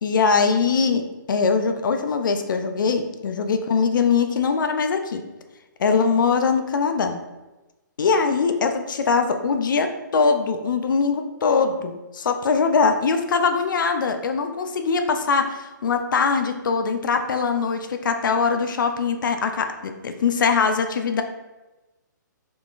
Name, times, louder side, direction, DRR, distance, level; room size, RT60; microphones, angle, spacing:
voice 1, 0.0-1.0 1.3-5.2 5.8-7.2 8.0-21.2, left 5 dB, 75° left, 6 dB, 0.4 m, -22 dB
3.7 x 3.5 x 2.4 m, 1.1 s
hypercardioid pair, 160°, 11 cm